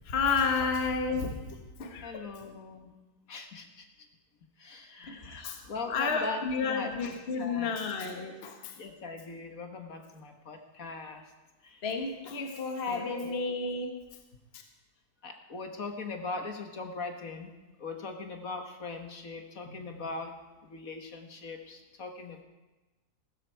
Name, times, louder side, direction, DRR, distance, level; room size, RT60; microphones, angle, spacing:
voice 1, 0.1-2.3 5.0-5.6 5.9-8.7 11.8-13.9, left 4 dB, 45° left, 4 dB, 1.4 m, -31 dB
voice 2, 2.0-2.9 3.3-3.9 4.6-6.9 7.3-7.8 8.8-11.2 11.6-11.8 12.9-13.4 15.2-17.5 17.8-20.3 20.6-22.4, left 3 dB, 60° left, 4 dB, 1.8 m, -40 dB
15.0 x 13.5 x 4.6 m, 1.1 s
omnidirectional pair, 1.7 m